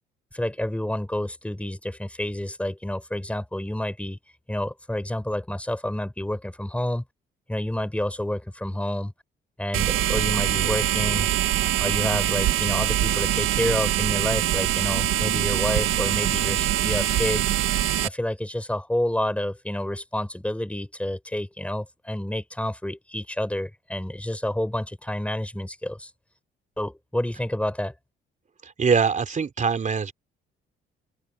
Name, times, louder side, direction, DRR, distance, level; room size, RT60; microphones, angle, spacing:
voice 1, 0.3-4.2 4.5-7.0 7.5-9.1 9.6-11.3 11.8-17.5 18.0-26.1 26.8-27.9, left 1 dB, 5° left, 6.8 m, -29 dB
sound 1, 9.7-18.1, right 13 dB, 90° right, 1.9 m, -23 dB
voice 2, 28.6-30.1, right 5 dB, 40° right, 3.5 m, -23 dB
cardioid pair, 90°, 20 cm